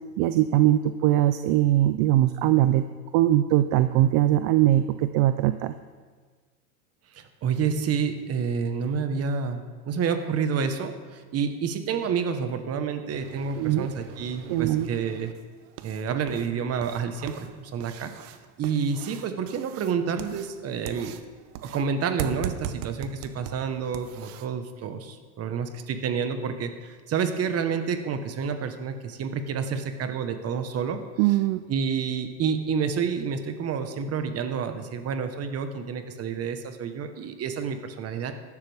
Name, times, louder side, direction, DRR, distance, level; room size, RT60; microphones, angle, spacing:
voice 1, 0.2-2.8 3.1-5.7 13.6-13.9 14.5-14.9 31.2-31.6, right 13 dB, 50° right, 11 dB, 0.6 m, -21 dB
voice 2, 7.1-15.3 15.8-18.1 18.6-21.2 21.6-31.0 31.7-38.3, right 6 dB, 30° right, 8 dB, 1.3 m, -29 dB
sound 1, 13.1-24.5, right 10 dB, 65° right, 1.0 m, -41 dB
14.5 x 12.0 x 3.5 m, 1.5 s
supercardioid pair, 130°, 48 cm